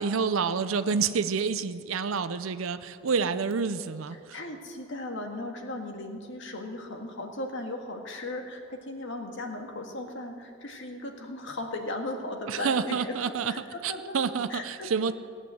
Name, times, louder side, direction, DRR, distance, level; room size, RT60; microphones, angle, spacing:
voice 1, 0.0-4.2 12.5-13.5 13.8-15.1, right 5 dB, 80° right, 11 dB, 0.6 m, -28 dB
voice 2, 4.1-14.2 14.5-14.9, left 2 dB, 65° left, 3 dB, 1.8 m, -37 dB
18.0 x 9.1 x 7.7 m, 2.4 s
head